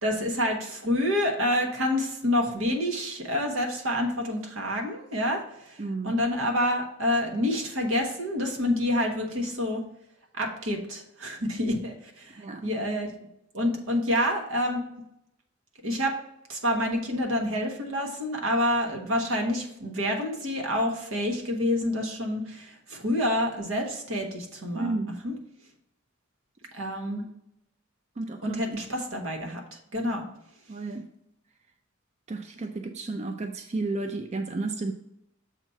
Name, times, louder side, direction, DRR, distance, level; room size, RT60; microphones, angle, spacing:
voice 1, 0.0-9.8 10.3-13.1 13.5-14.8 15.8-16.2 16.5-25.0 25.2-25.3 26.7-27.2 28.4-30.3, left 1 dB, 80° right, 2 dB, 1.3 m, -28 dB
voice 2, 5.8-6.2 12.4-12.6 24.7-25.2 28.2-28.8 30.7-31.1 32.3-34.9, right 3 dB, 35° right, 6 dB, 0.4 m, -32 dB
7.0 x 3.0 x 5.6 m, 0.81 s
head